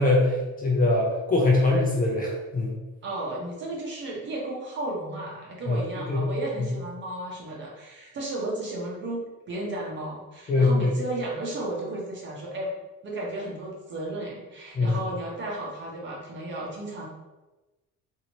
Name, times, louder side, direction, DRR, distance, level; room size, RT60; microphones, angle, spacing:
voice 1, 0.0-2.8 5.6-6.3 10.5-10.9 14.7-15.0, left 2 dB, 30° left, -2 dB, 0.6 m, -23 dB
voice 2, 3.0-12.7 13.0-17.1, right 1 dB, 40° right, -3 dB, 0.9 m, -34 dB
2.8 x 2.7 x 2.9 m, 1.1 s
cardioid pair, 140°, 29 cm